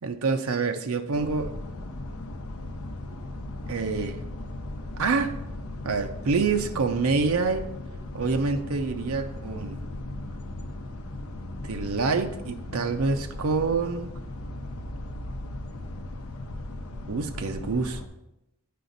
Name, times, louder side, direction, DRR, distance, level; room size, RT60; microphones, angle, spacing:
voice 1, 0.0-1.5 3.7-4.2 5.0-5.4 5.8-7.7 8.1-9.8 11.6-14.1 16.9-18.0, right 4 dB, 90° right, 7 dB, 0.6 m, -27 dB
sound 1, 1.1-18.1, left 2 dB, 85° left, 0.7 m, -37 dB
8.6 x 5.0 x 3.9 m, 0.88 s
head